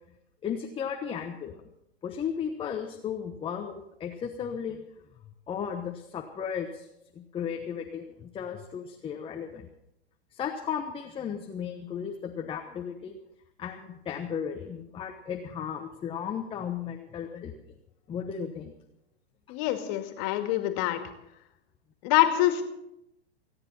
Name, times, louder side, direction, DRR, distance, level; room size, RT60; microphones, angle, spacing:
voice 1, 0.4-1.5 2.0-4.8 5.5-6.9 7.1-9.7 10.3-13.2 13.6-17.7 18.1-18.7, left 7 dB, 15° left, 3 dB, 1.1 m, -35 dB
voice 2, 19.5-21.0 22.0-22.6, left 14 dB, 40° left, 6 dB, 2.3 m, -25 dB
29.5 x 9.9 x 4.2 m, 0.83 s
hypercardioid pair, 115°, 32 cm